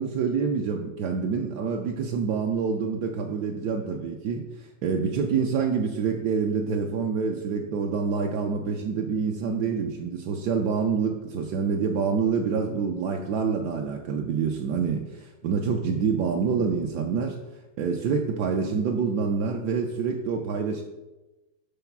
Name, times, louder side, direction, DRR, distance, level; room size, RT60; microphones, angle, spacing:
voice 1, 0.0-17.4 17.8-20.8, right 5 dB, 70° right, 2 dB, 1.0 m, -27 dB
7.0 x 4.0 x 5.9 m, 1.1 s
omnidirectional pair, 2.3 m